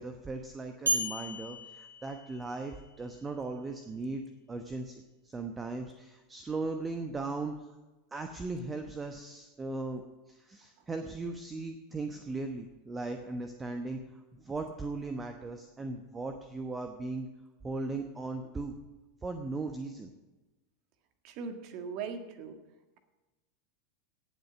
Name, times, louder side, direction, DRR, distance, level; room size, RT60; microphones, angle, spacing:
voice 1, 0.0-7.7 8.1-10.0 10.3-17.3 17.6-18.8 19.2-20.1, right 3 dB, 15° right, 6 dB, 1.1 m, -38 dB
sound 1, 0.9-2.9, right 1 dB, 80° right, 2.4 m, -34 dB
voice 2, 21.2-22.6, right 5 dB, 45° right, 7 dB, 1.7 m, -39 dB
17.5 x 8.0 x 6.0 m, 1.1 s
figure-of-eight pair, 85°, 0 cm